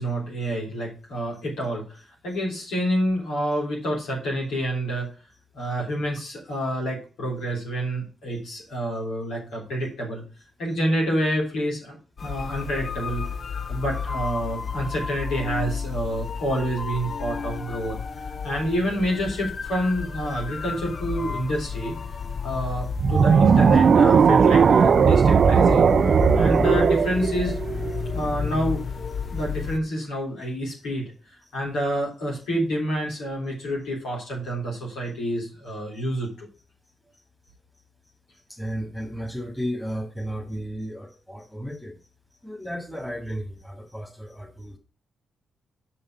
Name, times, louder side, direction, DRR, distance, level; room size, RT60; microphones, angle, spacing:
voice 1, 0.0-2.0 2.2-5.1 5.5-10.2 10.6-13.2 13.7-18.0 18.4-21.9 22.4-25.9 26.3-27.6 28.1-28.8 29.3-31.1 31.5-36.5, equal, 80° left, -3 dB, 3.7 m, -28 dB
sound 1, 12.2-29.8, left 6 dB, 55° left, 0.7 m, -32 dB
sound 2, 23.0-28.2, right 6 dB, 60° right, 0.4 m, -17 dB
voice 2, 23.4-23.8 28.2-28.3 29.4-29.5 30.7-30.8 31.4-31.5 38.5-42.0 42.4-44.8, equal, ahead, 0 dB, 2.5 m, -34 dB
6.6 x 5.5 x 6.1 m, 0.35 s
supercardioid pair, 45°, 0 cm